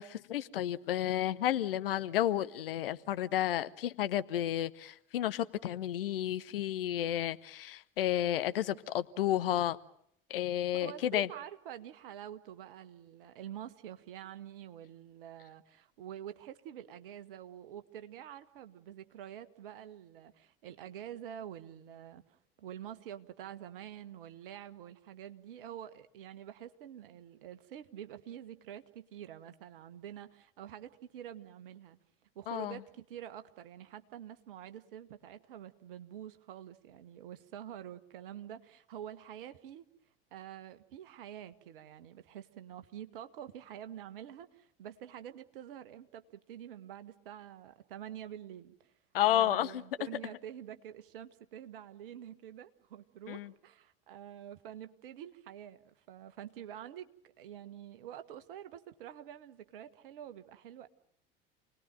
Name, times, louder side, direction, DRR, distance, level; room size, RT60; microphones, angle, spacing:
voice 1, 0.0-9.8 10.3-11.3 32.5-32.8 49.1-49.8 53.3-53.5, left 12 dB, 70° left, 14 dB, 1.0 m, -31 dB
voice 2, 10.7-32.0 32.3-39.8 40.3-48.9 49.2-57.1 57.4-60.9, right 10 dB, 65° right, 11 dB, 1.5 m, -47 dB
28.0 x 19.5 x 9.0 m, 0.70 s
figure-of-eight pair, 65°, 29 cm